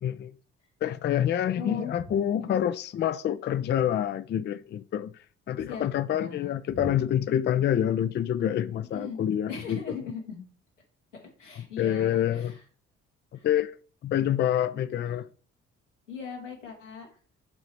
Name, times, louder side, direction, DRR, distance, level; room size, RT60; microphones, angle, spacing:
voice 1, 0.0-0.3 0.8-9.9 11.5-12.5 13.3-13.8 14.0-15.3, left 10 dB, 30° left, 0.5 m, -27 dB
voice 2, 1.6-1.9 2.4-2.7 5.7-5.8 6.1-6.5 6.8-6.9 8.9-9.2 9.5-10.5 11.1-12.5 13.3-13.4 16.1-17.1, left 5 dB, 85° left, 1.6 m, -39 dB
10.5 x 3.9 x 4.4 m
figure-of-eight pair, 45°, 36 cm